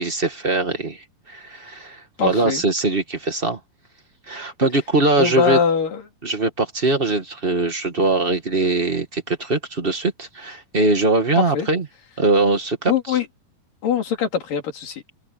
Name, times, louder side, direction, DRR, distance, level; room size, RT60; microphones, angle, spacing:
voice 1, 0.0-3.6 4.3-5.6 6.2-11.8 12.2-13.2, right 3 dB, 55° right, 0.6 m, -21 dB
voice 2, 2.2-2.6 5.2-6.1 11.4-11.7 12.9-13.3 13.8-15.0, left 7 dB, 65° left, 4.5 m, -22 dB
open air
omnidirectional pair, 4.2 m